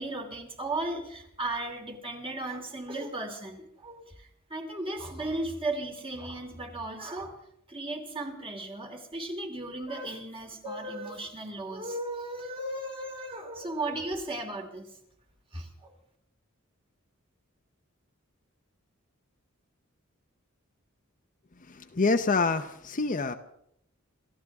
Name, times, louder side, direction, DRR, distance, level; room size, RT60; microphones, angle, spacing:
voice 1, 0.0-7.4 7.7-14.9 15.5-15.9, right 2 dB, 25° right, 3 dB, 2.8 m, -36 dB
voice 2, 21.9-23.3, left 3 dB, 40° left, 8 dB, 0.8 m, -26 dB
27.5 x 14.5 x 3.6 m, 0.73 s
head